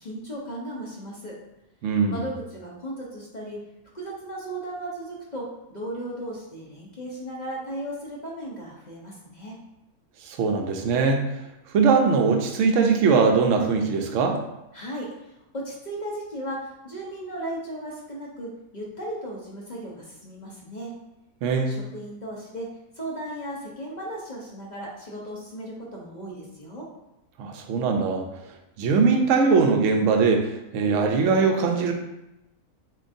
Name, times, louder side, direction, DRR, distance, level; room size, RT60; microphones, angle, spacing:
voice 1, 0.0-1.3 2.1-3.6 3.9-9.6 14.7-20.9 21.7-22.7 23.0-26.9, right 1 dB, 40° left, -4 dB, 0.8 m, -36 dB
voice 2, 1.8-2.2 10.2-11.2 11.7-14.4 21.4-21.8 27.4-28.2 28.8-31.9, right 5 dB, 65° right, 3 dB, 0.9 m, -21 dB
7.5 x 2.5 x 2.6 m, 0.92 s
omnidirectional pair, 1.6 m